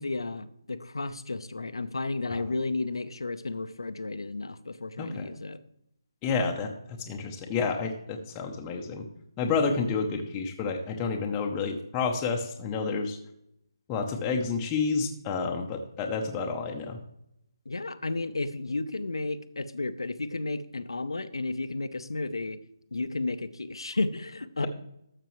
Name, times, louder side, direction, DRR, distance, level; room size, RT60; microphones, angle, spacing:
voice 1, 0.0-5.6 17.7-22.6 22.9-24.7, left 3 dB, 90° left, 12 dB, 0.7 m, -33 dB
voice 2, 5.0-5.3 6.2-9.1 9.4-13.2 13.9-17.0, left 4 dB, 15° left, 1 dB, 0.7 m, -30 dB
12.5 x 6.8 x 3.1 m, 0.79 s
hypercardioid pair, 165°, 2 cm